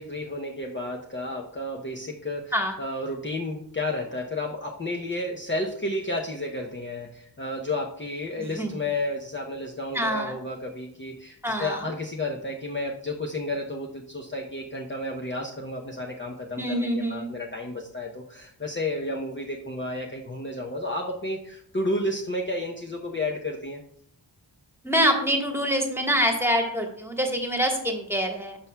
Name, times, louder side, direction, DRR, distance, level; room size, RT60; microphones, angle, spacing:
voice 1, 0.0-23.8, left 1 dB, 30° left, 0 dB, 0.7 m, -32 dB
voice 2, 9.9-10.3 11.4-11.8 16.6-17.3 24.8-28.6, equal, 5° right, 2 dB, 1.3 m, -25 dB
11.0 x 6.0 x 2.2 m, 0.67 s
wide cardioid pair, 70°, 41 cm